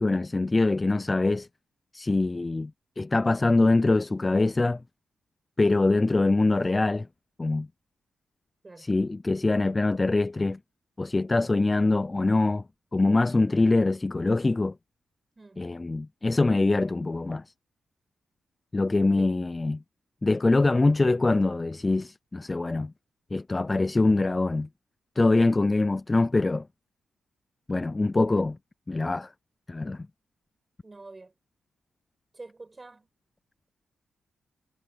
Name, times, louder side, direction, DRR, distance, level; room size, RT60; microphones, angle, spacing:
voice 1, 0.0-1.5 1.9-4.8 5.6-7.1 7.4-7.7 8.8-10.6 11.0-12.6 12.9-14.8 15.6-17.4 18.7-19.8 20.2-22.9 23.3-24.7 25.2-26.7 27.7-28.6 28.9-29.3 29.7-30.1, left 2 dB, 20° left, 0.3 m, -24 dB
voice 2, 30.8-31.3 32.3-33.1, right 3 dB, 25° right, 6.1 m, -46 dB
cardioid pair, 110°, 0 cm